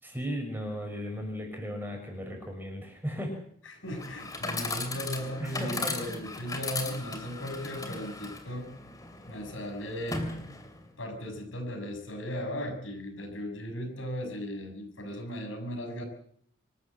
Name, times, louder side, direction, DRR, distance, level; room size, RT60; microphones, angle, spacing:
voice 1, 0.0-3.4 5.4-5.9, equal, 10° right, 2 dB, 6.3 m, -36 dB
voice 2, 3.6-8.7 9.3-10.3 11.0-16.0, equal, 85° left, 4 dB, 6.6 m, -37 dB
Chatter / Coin (dropping), 3.9-10.9, left 3 dB, 20° left, 2.8 m, -37 dB
25.5 x 14.0 x 7.6 m, 0.63 s
head